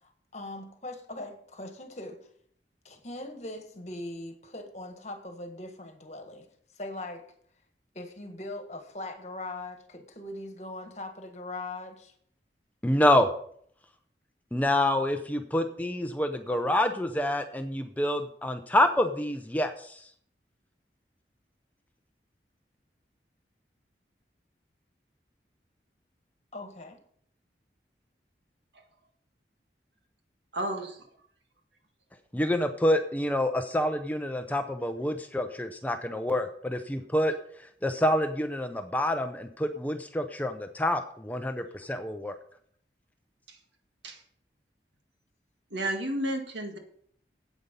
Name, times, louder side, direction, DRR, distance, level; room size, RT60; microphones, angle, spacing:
voice 1, 0.0-2.2 2.8-6.5 6.7-7.2 7.9-12.1 26.5-27.0, left 2 dB, 40° left, 6 dB, 1.5 m, -40 dB
voice 2, 12.8-13.3 14.5-20.0 32.3-37.3 37.8-42.4, left 1 dB, 10° left, 7 dB, 0.5 m, -27 dB
voice 3, 30.5-31.0 43.5-43.6 44.0-44.2 45.7-46.8, right 1 dB, 85° right, 4 dB, 1.8 m, -32 dB
9.5 x 8.2 x 5.3 m, 0.63 s
head